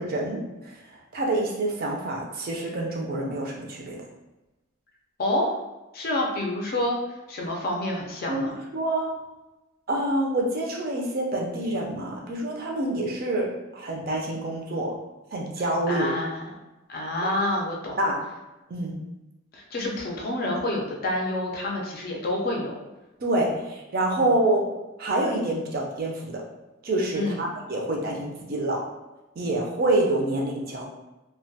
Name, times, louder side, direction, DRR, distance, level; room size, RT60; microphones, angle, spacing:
voice 1, 0.0-4.0 8.3-9.2 9.9-15.0 15.3-16.1 18.0-18.2 18.7-19.0 23.2-24.7 25.0-26.4 26.8-28.9 29.4-30.9, right 1 dB, 45° right, -1 dB, 0.4 m, -27 dB
voice 2, 5.2-5.5 5.9-8.5 15.9-16.5 16.9-18.0 19.5-22.8 27.1-27.4, left 1 dB, 45° left, -1 dB, 0.4 m, -28 dB
2.2 x 2.1 x 2.7 m, 1.0 s
head